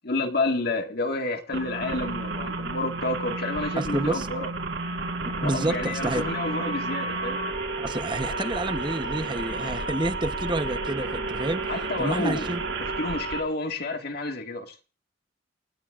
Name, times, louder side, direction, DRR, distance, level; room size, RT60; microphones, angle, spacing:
voice 1, 0.0-4.5 5.3-7.4 11.7-12.5 12.9-14.8, left 2 dB, 55° left, 1.9 m, -29 dB
sound 1, 1.5-13.4, right 3 dB, 70° right, 4.3 m, -31 dB
voice 2, 3.8-4.3 5.2-6.2 7.8-11.6 12.0-12.6, right 1 dB, 25° right, 1.0 m, -29 dB
29.0 x 17.5 x 2.6 m
head